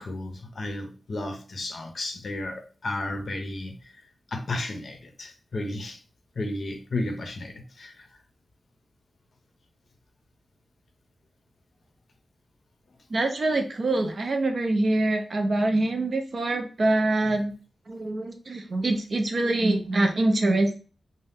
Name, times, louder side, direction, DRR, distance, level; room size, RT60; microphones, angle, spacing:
voice 1, 0.0-3.9 4.3-6.0 6.4-8.1 17.2-17.4, left 2 dB, 45° left, 0.6 m, -33 dB
voice 2, 13.1-17.5 17.9-20.8, right 2 dB, 40° right, 0.5 m, -24 dB
2.7 x 2.1 x 3.4 m
wide cardioid pair, 160°, 0 cm